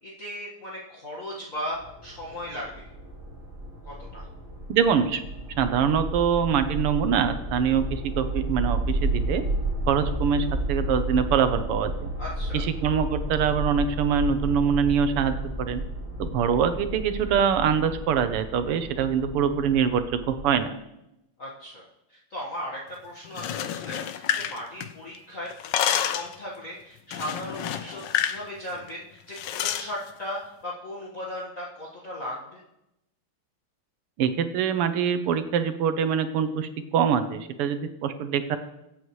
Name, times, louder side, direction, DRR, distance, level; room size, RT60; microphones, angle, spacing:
voice 1, 0.0-2.9 3.8-4.3 12.2-12.6 21.4-32.6, left 1 dB, 40° left, -6 dB, 1.9 m, -37 dB
sound 1, 1.7-20.5, right 1 dB, 35° right, 3.8 m, -32 dB
voice 2, 4.7-5.2 5.6-9.4 9.9-12.1 12.5-15.8 16.2-20.8 34.2-38.6, right 7 dB, 85° right, 10 dB, 1.8 m, -24 dB
sound 2, 23.2-25.2 25.5-26.4 27.1-28.4 28.7-28.9 29.3-29.9, left 9 dB, 70° left, 1.2 m, -28 dB
23.5 x 8.4 x 3.2 m, 0.88 s
omnidirectional pair, 2.4 m